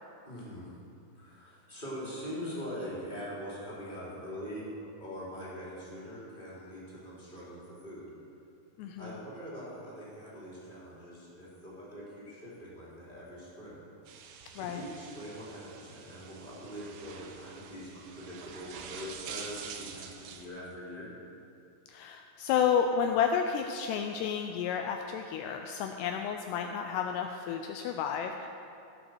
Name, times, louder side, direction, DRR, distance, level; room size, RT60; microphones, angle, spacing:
voice 1, 0.2-0.7 1.1-8.1 9.0-13.9 14.5-21.1, equal, 15° left, -8 dB, 2.6 m, -43 dB
voice 2, 8.8-9.1 14.6-14.8 21.9-28.5, left 7 dB, 85° left, 5 dB, 2.4 m, -31 dB
sound 1, 14.1-20.5, right 7 dB, 80° right, 2.9 m, -47 dB
17.0 x 6.3 x 6.2 m, 2.6 s
omnidirectional pair, 5.2 m